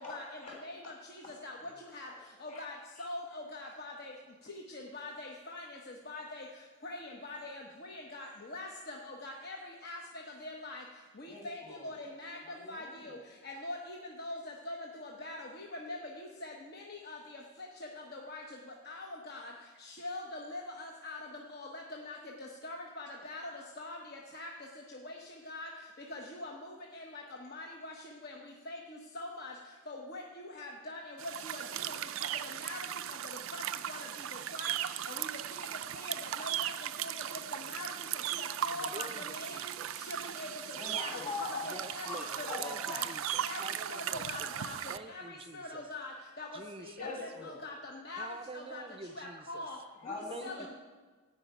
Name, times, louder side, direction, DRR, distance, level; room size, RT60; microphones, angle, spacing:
voice 1, 0.0-0.6 1.6-1.7 2.1-2.2 2.5-2.7 3.0-3.1 11.3-11.9 12.5-13.1 40.7-41.8 42.0-43.1 47.0-47.6 50.0-50.7, left 3 dB, 35° left, -1 dB, 3.5 m, -42 dB
voice 2, 2.4-4.1 4.7-5.6 6.1-6.4 6.8-9.6 9.8-10.0 10.4-10.8 11.2-11.6 11.8-12.4 12.7-13.2 13.4-14.8 15.0-16.0 16.4-17.2 18.1-18.4 18.9-19.5 20.0-21.2 21.5-22.2 22.6-23.4 23.8-24.0 24.3-24.5 25.0-25.1 25.5-25.7 26.1-26.5 26.9-27.2 27.5-27.9 28.2-28.3 28.7-28.8 29.1-29.5 29.9-32.0 32.6-32.8 33.5-33.6 33.9-34.0 34.5-34.7 35.1-35.3 35.9-36.1 36.4-36.7 37.0-37.4 37.7-37.9 38.4-39.6 40.1-40.5 40.9-41.1 41.6-42.1 42.4-43.0 43.4-43.6 43.9-44.7 45.1-46.1 46.4-46.5 46.8-47.7 48.0-48.3 48.5-48.8 49.2-49.8 50.4-50.7, left 2 dB, 50° left, 0 dB, 1.0 m, -43 dB
sound 1, 31.2-45.0, right 11 dB, 80° right, 0.4 m, -37 dB
voice 3, 38.8-40.1 41.6-44.5 44.9-45.9 46.5-47.1 48.2-49.7 50.3-50.7, right 3 dB, 25° right, 10 dB, 0.5 m, -48 dB
13.0 x 5.6 x 9.0 m, 1.4 s
head